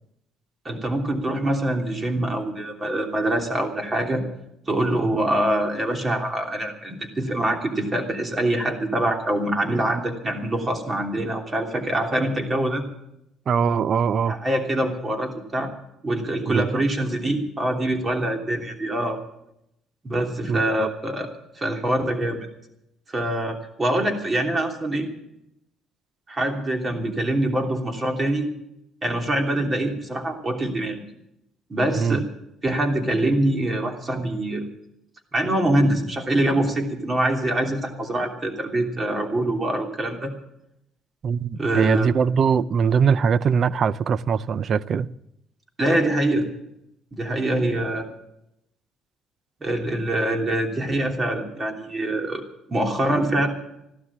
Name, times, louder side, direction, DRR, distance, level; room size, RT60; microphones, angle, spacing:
voice 1, 0.6-4.2 4.7-12.8 14.3-15.7 16.0-19.2 20.0-21.3 21.6-22.5 23.1-25.1 26.3-28.5 29.0-31.0 31.7-32.2 32.6-34.7 35.3-40.3 41.6-42.1 45.8-46.5 47.1-48.1 49.6-52.4 52.7-53.5, right 1 dB, 25° right, 3.1 m, -24 dB
voice 2, 13.5-14.3 16.5-16.8 20.5-20.9 31.9-32.2 41.2-45.1, right 6 dB, 50° right, 0.6 m, -22 dB
15.0 x 12.5 x 7.4 m
cardioid pair, 105°, 0 cm